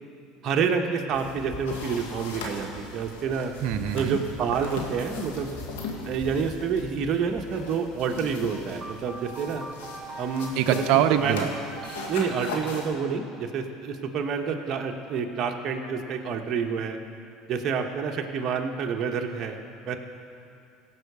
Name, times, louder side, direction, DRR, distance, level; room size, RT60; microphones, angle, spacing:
voice 1, 0.4-3.5 3.9-5.5 6.0-9.6 10.2-11.5 12.1-17.0 17.5-20.0, right 6 dB, 45° right, 3 dB, 1.1 m, -28 dB
sound 1, 1.1-12.9, left 4 dB, 90° left, 1.6 m, -40 dB
sound 2, 1.1-9.3, right 1 dB, 5° left, 3.1 m, -44 dB
voice 2, 3.6-4.2 10.6-11.5, right 10 dB, 65° right, 6 dB, 0.7 m, -23 dB
sound 3, 8.5-12.9, right 3 dB, 30° right, 1.0 m, -42 dB
17.0 x 5.7 x 6.8 m, 2.6 s
supercardioid pair, 95°, 0 cm